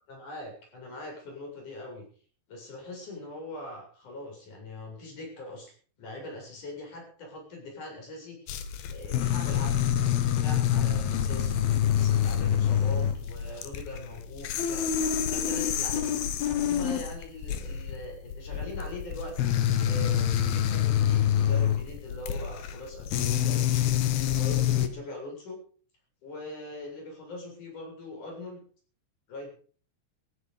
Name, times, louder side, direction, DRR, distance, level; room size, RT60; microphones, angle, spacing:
voice 1, 0.1-2.1 2.5-5.7 6.0-8.6 8.9-11.5 11.9-14.9 15.3-25.6 26.2-28.6 29.3-29.5, left 2 dB, 45° left, 1 dB, 8.9 m, -42 dB
sound 1, 8.5-24.9, left 9 dB, 65° left, 3.1 m, -27 dB
16.5 x 16.0 x 5.4 m, 0.43 s
omnidirectional pair, 5.0 m